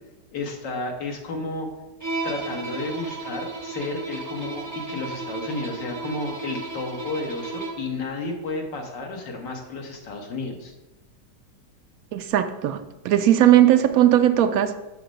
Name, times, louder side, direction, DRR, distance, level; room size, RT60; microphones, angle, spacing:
voice 1, 0.3-1.7 2.2-10.7, left 3 dB, 80° left, 1 dB, 1.8 m, -32 dB
Bowed string instrument, 2.0-7.9, right 3 dB, 20° right, 0.5 m, -34 dB
voice 2, 12.1-14.8, right 12 dB, 70° right, 10 dB, 0.8 m, -18 dB
6.8 x 5.3 x 5.1 m, 1.0 s
omnidirectional pair, 1.9 m